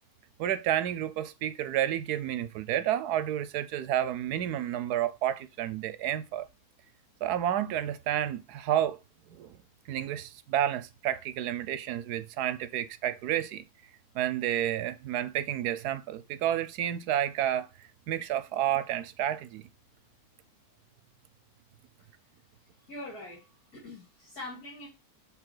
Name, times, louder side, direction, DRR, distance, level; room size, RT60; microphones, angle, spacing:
voice 1, 0.4-6.4 7.2-9.0 9.3-9.6 9.9-13.6 14.1-17.7 18.1-19.6, right 11 dB, 85° right, 1.2 m, -30 dB
voice 2, 22.8-24.9, left 1 dB, 75° left, 3.2 m, -43 dB
6.8 x 3.5 x 4.8 m
omnidirectional pair, 1.6 m